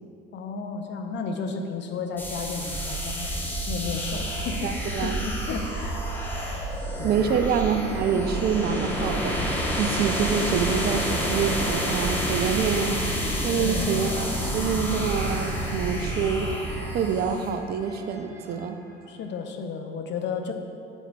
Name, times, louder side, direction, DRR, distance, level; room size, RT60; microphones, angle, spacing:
voice 1, 0.3-4.7 5.0-6.1 7.0-7.4 13.5-14.0 19.1-20.5, left 4 dB, 35° left, 4 dB, 0.7 m, -33 dB
sound 1, 2.1-2.2 2.7-4.5 5.8-8.4 8.7-9.0 9.9-10.4 10.8-12.2 13.7-15.3 15.6-17.1 17.8-18.5, right 5 dB, 70° right, 1.6 m, -46 dB
sound 2, 2.2-17.5, equal, 5° left, 1.1 m, -29 dB
voice 2, 4.6-5.2 7.0-9.4 9.8-13.0 13.4-16.5 16.9-18.8, right 6 dB, 30° right, 7 dB, 0.5 m, -26 dB
sound 3, 9.1-19.3, right 1 dB, 85° right, 0.8 m, -44 dB
7.9 x 7.2 x 2.3 m, 2.4 s
figure-of-eight pair, 60°, 31 cm